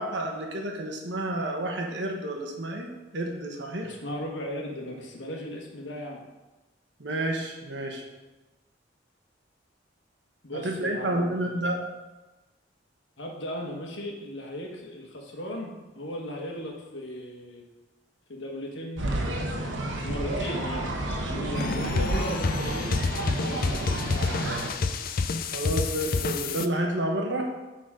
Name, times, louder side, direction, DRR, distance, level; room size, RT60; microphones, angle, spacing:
voice 1, 0.0-3.9 7.0-8.0 10.5-11.8 25.5-27.5, right 1 dB, 70° right, 2 dB, 1.2 m, -30 dB
voice 2, 3.8-6.2 10.4-11.7 13.2-17.6 18.3-22.9 23.4-25.0, equal, 80° left, 0 dB, 1.4 m, -37 dB
sound 1, 19.0-24.7, right 1 dB, 85° right, 1.2 m, -30 dB
sound 2, 21.5-26.7, left 4 dB, 50° left, 0.4 m, -29 dB
8.7 x 4.1 x 5.0 m, 1.1 s
head